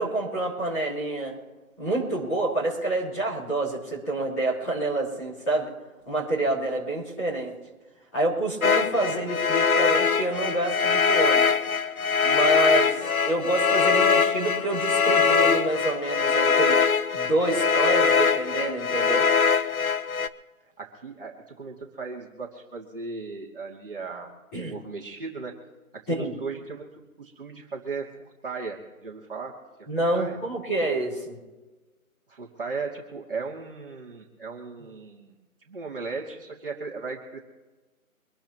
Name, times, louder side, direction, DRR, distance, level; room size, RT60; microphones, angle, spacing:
voice 1, 0.0-1.3 1.8-5.7 6.0-7.6 8.1-11.4 12.2-16.8 17.1-19.2 24.5-24.7 26.1-26.4 29.9-31.4, right 2 dB, 10° left, -8 dB, 4.1 m, -27 dB
sound 1, 8.6-20.3, left 5 dB, 70° left, 1.1 m, -22 dB
voice 2, 20.8-24.3 24.6-25.5 26.1-29.5 30.1-30.4 32.3-35.4 35.7-37.4, right 4 dB, 40° right, -2 dB, 2.6 m, -37 dB
25.5 x 12.5 x 3.0 m, 1.2 s
figure-of-eight pair, 175°, 43 cm